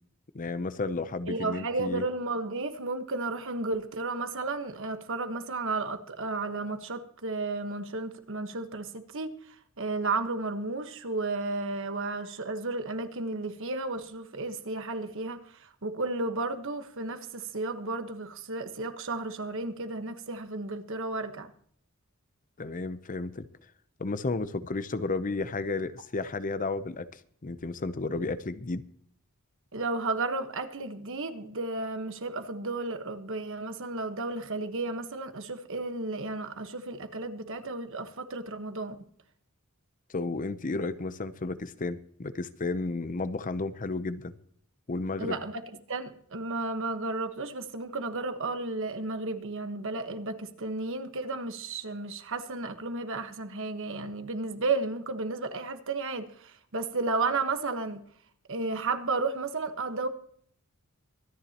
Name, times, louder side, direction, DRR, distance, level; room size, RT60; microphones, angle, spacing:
voice 1, 0.3-2.0 22.6-23.5 24.0-28.8 40.1-44.4 44.9-45.4, left 3 dB, 35° left, 0.7 m, -32 dB
voice 2, 1.3-21.5 29.7-39.0 45.2-45.6 45.9-58.0 58.5-60.1, right 3 dB, 60° right, 1.3 m, -33 dB
24.5 x 10.0 x 2.9 m
head